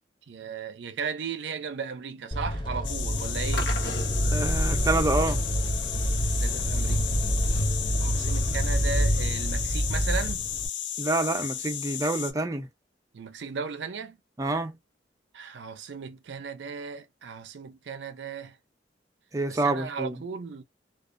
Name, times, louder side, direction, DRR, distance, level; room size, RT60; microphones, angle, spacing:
voice 1, 0.3-3.8 6.4-7.1 8.0-10.5 13.1-14.2 15.3-18.6 19.5-20.6, right 5 dB, 80° right, 0.5 m, -36 dB
sound 1, 2.3-10.7, equal, 25° left, 0.6 m, -27 dB
sound 2, 2.8-12.3, left 9 dB, 80° left, 0.4 m, -34 dB
sound 3, 3.5-10.6, left 1 dB, 65° left, 0.9 m, -41 dB
voice 2, 4.0-5.4 11.0-12.7 14.4-14.8 19.3-20.2, right 2 dB, 20° right, 0.5 m, -27 dB
2.3 x 2.1 x 2.4 m
head